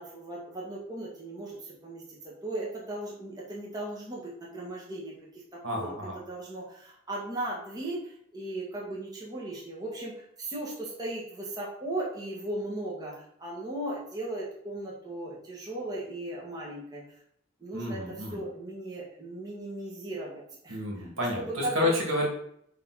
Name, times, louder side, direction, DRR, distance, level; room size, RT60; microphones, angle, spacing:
voice 1, 0.0-5.2 5.5-17.0 17.6-21.1 21.4-21.9, right 1 dB, 20° right, -4 dB, 1.7 m, -37 dB
voice 2, 5.6-6.2 17.7-18.4 20.7-22.3, left 1 dB, 75° right, -2 dB, 2.6 m, -30 dB
9.5 x 3.8 x 4.2 m, 0.68 s
head